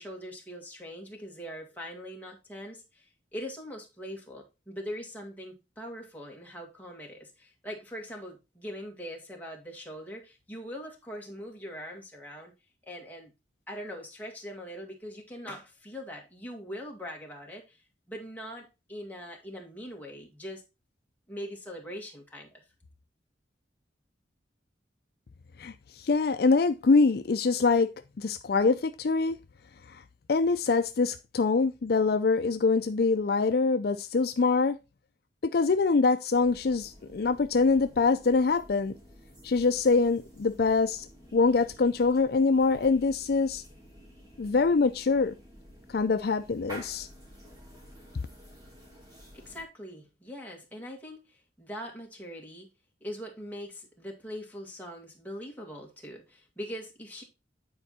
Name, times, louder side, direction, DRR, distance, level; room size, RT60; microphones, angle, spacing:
voice 1, 0.0-12.5 12.8-13.3 13.7-17.8 18.1-20.6 21.3-22.6 49.3-52.7 53.0-57.2, equal, 10° left, 2.0 m, -42 dB
voice 2, 25.6-27.9 28.2-29.4 29.9-30.0 30.3-34.8 35.5-38.9 39.4-41.1 41.3-43.6 44.4-45.3 45.9-47.1, left 4 dB, 60° left, 0.4 m, -24 dB
sound 1, 36.3-49.6, equal, 20° right, 2.7 m, -51 dB
9.6 x 4.5 x 4.2 m
head